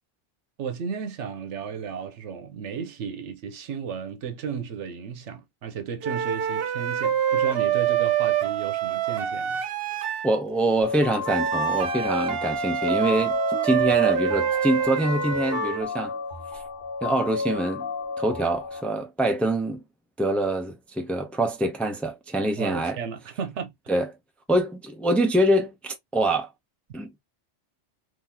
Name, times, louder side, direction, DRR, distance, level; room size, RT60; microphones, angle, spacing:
voice 1, 0.6-9.6 22.6-23.7, right 7 dB, 85° right, 1.1 m, -34 dB
sound 1, 6.0-10.3 11.2-15.9, right 10 dB, 60° right, 0.8 m, -26 dB
voice 2, 10.2-16.1 17.0-17.9 18.2-19.8 20.2-23.0 23.9-24.1 24.5-26.5 26.9-27.1, right 1 dB, ahead, 0.5 m, -25 dB
sound 2, 10.8-18.8, left 5 dB, 50° left, 1.2 m, -31 dB
3.8 x 2.8 x 2.7 m
omnidirectional pair, 1.2 m